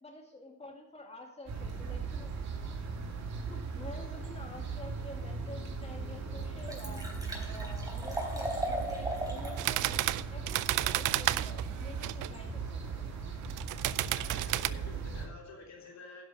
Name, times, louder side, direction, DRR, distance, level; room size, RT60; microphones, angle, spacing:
voice 1, 0.0-2.3 3.5-7.1 7.4-10.0 10.3-13.0, left 2 dB, 20° left, 0 dB, 2.3 m, -48 dB
sound 1, 1.5-15.3, right 4 dB, 60° right, 2.7 m, -38 dB
Liquid, 5.5-5.6 6.1-6.2 6.4-9.6 10.0-10.1, right 1 dB, 10° right, 3.6 m, -37 dB
sound 2, 9.6-12.3 13.4-14.7, right 16 dB, 85° right, 0.5 m, -31 dB
voice 2, 14.1-16.2, left 3 dB, 60° left, 0 dB, 3.2 m, -49 dB
11.0 x 6.0 x 6.7 m, 0.88 s
cardioid pair, 90°, 30 cm